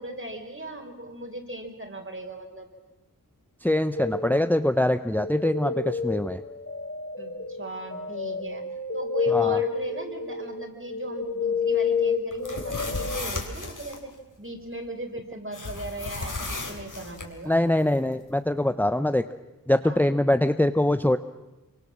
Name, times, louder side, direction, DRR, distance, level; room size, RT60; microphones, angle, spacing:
voice 1, 0.0-2.7 7.2-8.6 8.9-14.1 14.4-17.6 19.8-20.1, right 1 dB, 35° right, 4 dB, 4.2 m, -38 dB
voice 2, 3.6-6.4 9.3-9.6 17.5-19.2 19.7-21.2, left 1 dB, 5° left, 10 dB, 0.8 m, -23 dB
sound 1, 3.9-4.7 5.2-13.2, left 5 dB, 40° left, 3.5 m, -29 dB
sound 2, 12.3-14.0 15.5-17.3, left 3 dB, 60° left, 3.5 m, -34 dB
26.0 x 24.0 x 7.4 m, 1.0 s
wide cardioid pair, 65°, 35 cm